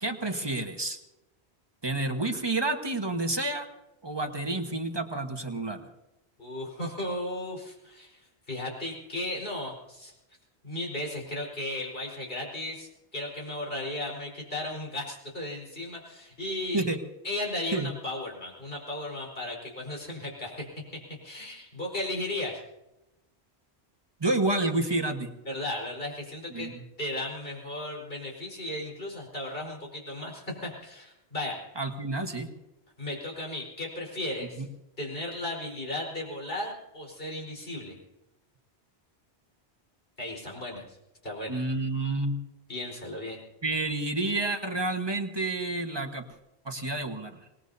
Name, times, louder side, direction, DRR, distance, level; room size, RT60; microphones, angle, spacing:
voice 1, 0.0-1.0 1.8-3.7 4.0-5.9 16.7-17.0 17.7-17.9 24.2-25.3 26.5-26.8 31.8-32.5 34.6-34.7 41.5-42.4 43.6-46.2 46.6-47.4, right 2 dB, 25° right, 4 dB, 1.4 m, -29 dB
voice 2, 6.4-10.1 10.6-16.8 17.2-20.7 20.9-22.6 25.5-26.7 27.0-31.6 33.0-34.6 35.0-38.0 40.2-41.0 41.2-41.6 42.7-43.4, left 1 dB, 60° left, -2 dB, 4.8 m, -35 dB
26.0 x 20.0 x 2.7 m, 0.94 s
omnidirectional pair, 1.1 m